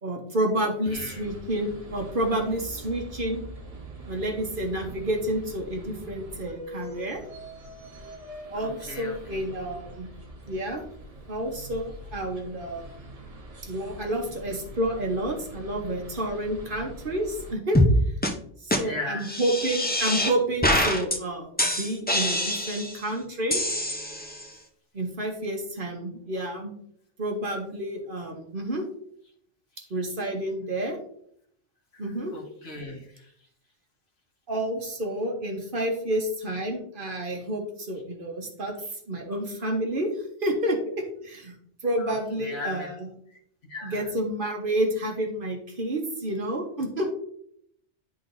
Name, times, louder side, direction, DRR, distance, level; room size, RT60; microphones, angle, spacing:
voice 1, 0.0-3.4 4.1-7.2 8.5-10.1 10.5-10.8 11.3-13.0 13.7-17.8 18.6-23.6 24.9-26.7 27.2-28.9 29.9-31.0 32.0-32.3 34.5-38.7 39.1-40.1 40.4-41.5 41.8-43.1 43.8-47.1, right 1 dB, 50° right, 2 dB, 1.2 m, -29 dB
voice 2, 0.6-1.2 8.5-9.4 18.8-19.4 31.9-32.0 32.3-33.3 42.0-43.0 43.7-44.1, left 2 dB, 60° left, 0 dB, 1.6 m, -38 dB
sound 1, 0.8-17.5, equal, 35° right, 1.1 m, -43 dB
sound 2, 17.7-17.9 18.2-18.3 18.7-18.8 19.2-20.3 20.6-21.2 21.6-23.0 23.5-24.4, left 1 dB, 10° left, 0.4 m, -24 dB
10.5 x 3.8 x 2.6 m, 0.68 s
omnidirectional pair, 1.2 m